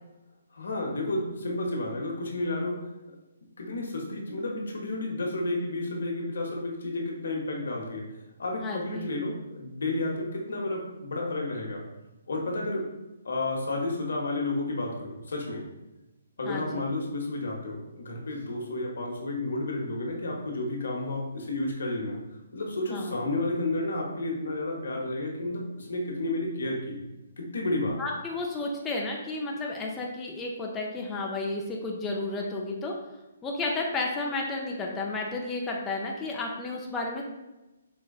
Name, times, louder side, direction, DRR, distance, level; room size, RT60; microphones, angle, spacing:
voice 1, 0.5-2.8 3.6-8.0 8.4-11.8 12.3-12.9 13.2-15.6 16.4-22.2 22.5-27.0 27.4-28.0, left 2 dB, 80° left, -1 dB, 0.8 m, -31 dB
voice 2, 8.6-9.1 16.4-16.9 22.9-23.1 28.0-32.9 33.4-37.2, left 2 dB, 10° left, -2 dB, 0.4 m, -32 dB
4.3 x 2.4 x 2.3 m, 1.0 s
hypercardioid pair, 155°, 0 cm